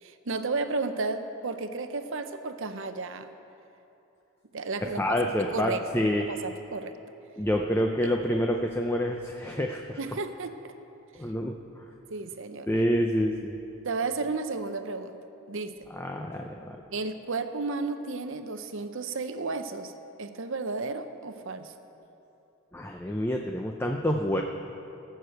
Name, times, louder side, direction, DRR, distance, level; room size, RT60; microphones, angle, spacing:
voice 1, 0.0-3.3 4.5-5.8 6.3-7.0 8.0-8.1 10.0-10.7 12.1-12.7 13.8-15.2 15.5-15.9 16.9-21.7, right 3 dB, 60° right, 9 dB, 0.7 m, -33 dB
voice 2, 4.8-6.2 7.4-10.0 11.2-11.9 12.7-13.5 15.9-16.8 22.7-24.4, equal, 10° left, 2 dB, 0.5 m, -28 dB
17.0 x 6.8 x 7.8 m, 3.0 s
head